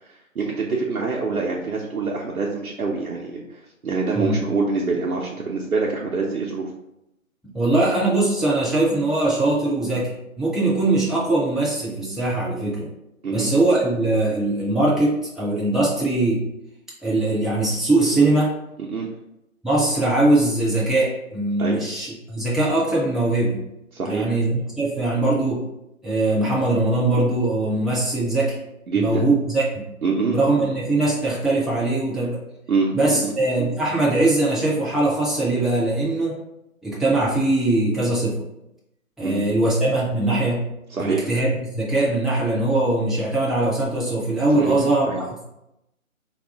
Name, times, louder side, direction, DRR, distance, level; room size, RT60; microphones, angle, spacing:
voice 1, 0.0-6.7 13.2-13.5 18.8-19.1 21.6-21.8 23.9-24.4 28.9-29.3 30.0-30.7 32.7-33.3 39.2-39.4 40.9-41.3 44.5-44.8 45.1-45.2, right 4 dB, 90° right, -2 dB, 0.7 m, -25 dB
voice 2, 7.5-12.9 13.3-16.4 17.0-18.5 19.6-23.6 24.1-25.7 26.0-28.6 28.9-29.8 30.3-32.4 32.9-36.3 36.8-38.4 39.2-40.7 41.0-41.5 41.7-45.4, right 2 dB, ahead, -8 dB, 0.4 m, -21 dB
3.6 x 2.3 x 3.5 m, 0.87 s
figure-of-eight pair, 150°, 42 cm